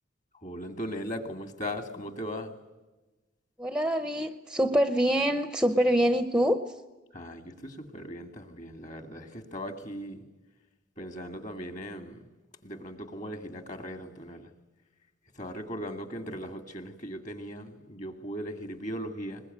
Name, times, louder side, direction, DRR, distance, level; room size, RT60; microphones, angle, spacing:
voice 1, 0.4-2.5 7.1-10.2 11.0-12.2 12.6-14.5 15.4-19.4, equal, 35° left, 7 dB, 2.4 m, -38 dB
voice 2, 3.6-6.6, equal, 5° right, 10 dB, 0.8 m, -25 dB
22.0 x 21.5 x 9.3 m, 1.1 s
head